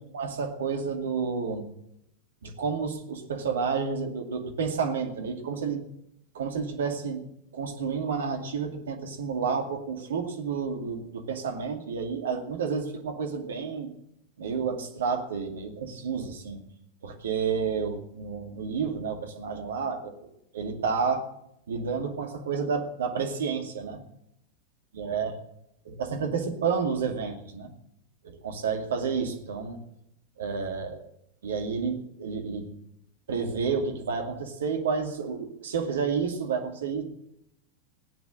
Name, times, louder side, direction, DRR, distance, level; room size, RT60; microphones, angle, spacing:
voice 1, 0.1-1.6 2.4-5.8 6.3-7.2 7.5-13.9 14.4-16.6 17.0-20.1 20.5-21.2 21.7-24.0 25.0-25.3 25.9-27.7 28.2-29.8 30.4-31.0 31.4-32.7 33.3-37.0, right 5 dB, 65° right, 3 dB, 2.3 m, -30 dB
17.5 x 9.5 x 6.3 m, 0.77 s
figure-of-eight pair, 90°, 0 cm